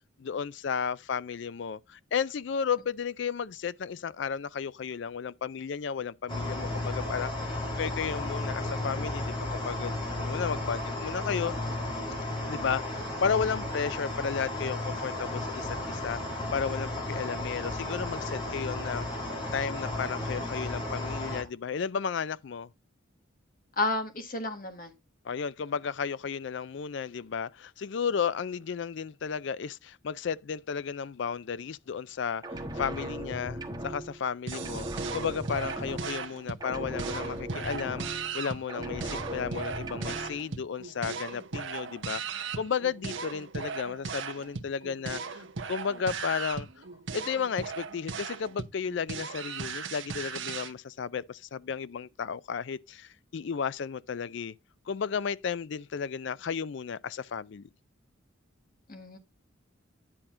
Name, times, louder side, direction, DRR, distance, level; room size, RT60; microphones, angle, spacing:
voice 1, 0.2-11.5 12.5-19.1 19.5-22.7 25.2-32.4 32.7-46.7 47.1-54.5 54.9-57.7, left 6 dB, 60° left, 0.4 m, -33 dB
sound 1, 6.3-21.4, left 1 dB, 25° left, 2.7 m, -34 dB
voice 2, 23.8-24.9 58.9-59.2, left 2 dB, 45° left, 1.6 m, -31 dB
sound 2, 32.4-34.3 34.5-36.4 36.6-38.4 38.7-40.4, right 1 dB, 20° right, 1.3 m, -38 dB
sound 3, 34.5-50.7, right 5 dB, 65° right, 1.0 m, -38 dB
10.0 x 5.8 x 3.7 m
head